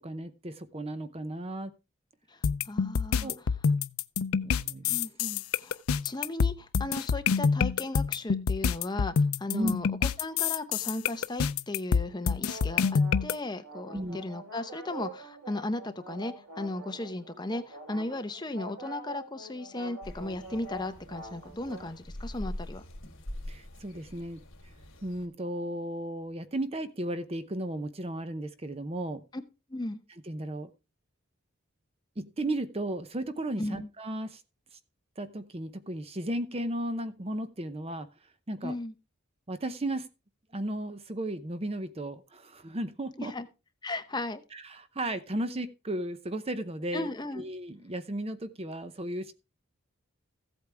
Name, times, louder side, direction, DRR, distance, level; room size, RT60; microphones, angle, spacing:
voice 1, 0.0-1.7 3.2-3.4 4.4-5.0 9.5-9.7 13.9-14.2 23.5-24.4 25.0-29.2 30.3-30.7 32.2-34.4 35.2-38.1 38.5-38.8 39.5-40.1 40.5-43.4 44.5-47.1 47.3-49.3, right 1 dB, 30° right, 11 dB, 0.7 m, -35 dB
voice 2, 2.3-3.3 4.9-22.8 29.3-29.4 29.7-30.0 33.6-33.9 38.6-38.9 43.2-43.5 43.8-44.4 46.9-47.4, left 2 dB, 20° left, 9 dB, 0.8 m, -36 dB
sound 1, 2.4-13.3, left 6 dB, 85° left, 0.5 m, -27 dB
sound 2, 12.3-21.9, right 2 dB, 75° right, 6.6 m, -46 dB
sound 3, 20.0-25.3, left 1 dB, 60° left, 2.9 m, -43 dB
15.0 x 8.3 x 3.4 m, 0.28 s
head